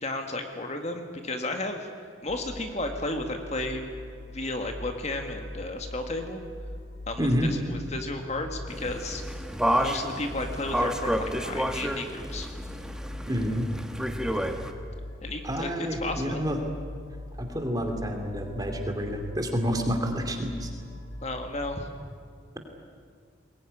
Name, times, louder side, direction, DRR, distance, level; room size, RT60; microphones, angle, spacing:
voice 1, 0.0-1.9 2.2-3.8 4.3-6.4 7.1-9.2 9.7-12.5 15.2-15.7 16.0-16.4 21.2-21.9, left 2 dB, 35° left, 5 dB, 1.8 m, -33 dB
sound 1, 2.3-21.8, left 1 dB, 85° left, 3.5 m, -41 dB
voice 2, 7.2-7.5 13.3-13.6 15.4-16.6 17.4-20.7, equal, 20° right, 4 dB, 2.6 m, -29 dB
sound 2, 8.7-14.7, equal, 5° right, 1.2 m, -30 dB
22.0 x 20.0 x 9.9 m, 2.1 s
head